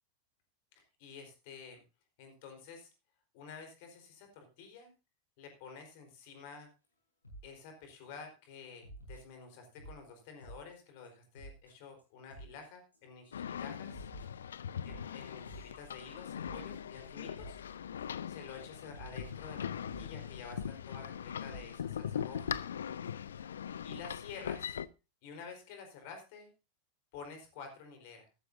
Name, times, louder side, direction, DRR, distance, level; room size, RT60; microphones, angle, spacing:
voice 1, 0.7-1.8 2.2-2.9 3.3-4.9 5.4-6.7 7.4-14.1 14.9-17.6 18.3-22.5 23.8-24.8 25.2-26.5 27.1-28.3, left 5 dB, 50° left, 5 dB, 4.3 m, -50 dB
sound 1, 7.2-7.5 7.9-8.1 8.8-10.0 10.4-10.8 11.0-11.1 11.3-11.7 12.0-12.1 12.3-12.6 12.9-13.3 13.6-18.3 18.6-18.7 18.9-20.7 21.5-21.8 22.4-22.6 23.0-23.1 23.4-23.5, right 1 dB, 85° left, 6.9 m, -52 dB
sound 2, 13.3-24.9, left 8 dB, 65° left, 0.5 m, -41 dB
14.0 x 14.0 x 2.7 m, 0.29 s
figure-of-eight pair, 90°, 0 cm